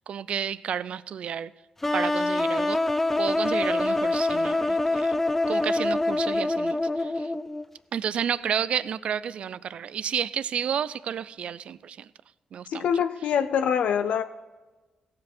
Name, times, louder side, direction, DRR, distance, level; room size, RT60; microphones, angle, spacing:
voice 1, 0.1-1.5 1.9-2.8 3.2-5.2 5.5-7.3 7.9-12.1 12.5-12.9, right 8 dB, 65° right, 17 dB, 0.4 m, -31 dB
sound 1, 1.8-7.6, left 2 dB, 15° left, 0.5 m, -25 dB
voice 2, 12.7-14.2, left 8 dB, 90° left, 8 dB, 0.4 m, -24 dB
16.5 x 7.6 x 4.3 m, 1.2 s
cardioid pair, 120°, 2 cm